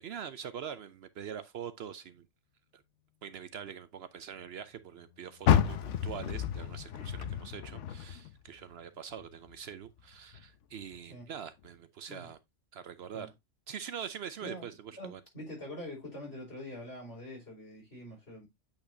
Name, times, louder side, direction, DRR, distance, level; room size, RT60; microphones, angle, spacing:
voice 1, 0.0-2.3 2.7-2.8 3.2-12.4 12.7-13.3 13.7-15.2, right 8 dB, 65° right, 0.8 m, -44 dB
Car, 5.4-8.7 9.1-10.5 10.9-11.0 11.6-11.7, left 9 dB, 80° left, 1.0 m, -30 dB
voice 2, 15.0-18.5, left 1 dB, 60° left, 4.8 m, -44 dB
8.5 x 5.4 x 2.6 m
omnidirectional pair, 1.2 m